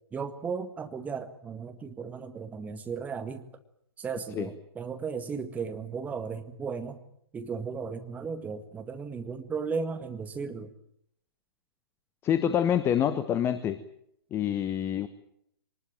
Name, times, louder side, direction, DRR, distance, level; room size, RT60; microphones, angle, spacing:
voice 1, 0.1-3.4 4.0-7.0 7.3-10.7, right 5 dB, 10° right, 8 dB, 1.7 m, -35 dB
voice 2, 12.2-13.8 14.3-15.1, left 9 dB, 20° left, 13 dB, 1.1 m, -26 dB
23.5 x 20.0 x 9.0 m, 0.71 s
figure-of-eight pair, 120°, 13 cm